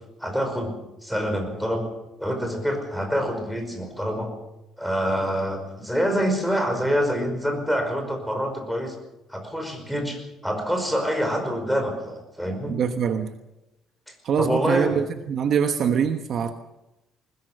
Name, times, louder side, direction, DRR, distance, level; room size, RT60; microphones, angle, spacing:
voice 1, 0.2-0.7 1.0-1.8 2.2-4.3 4.8-8.9 9.3-12.7 14.1-15.0, equal, ahead, 4 dB, 5.2 m, -26 dB
voice 2, 12.7-13.3 14.2-16.5, right 7 dB, 45° right, 7 dB, 1.2 m, -24 dB
21.0 x 20.5 x 6.7 m, 0.94 s
cardioid pair, 155°, 0 cm